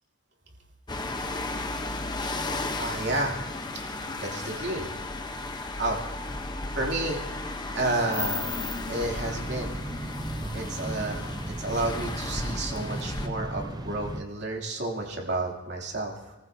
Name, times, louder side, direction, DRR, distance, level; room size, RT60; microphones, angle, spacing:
sound 1, 0.9-13.3, left 2 dB, 20° left, 0.8 m, -34 dB
voice 1, 2.8-3.4 3.7-4.9 5.8-6.0 6.7-7.2 7.5-8.5 8.9-9.7 10.5-16.4, right 2 dB, 55° right, 0 dB, 2.9 m, -31 dB
sound 2, 8.9-14.2, right 1 dB, 20° right, 0.6 m, -36 dB
28.5 x 15.5 x 2.7 m, 1.1 s
head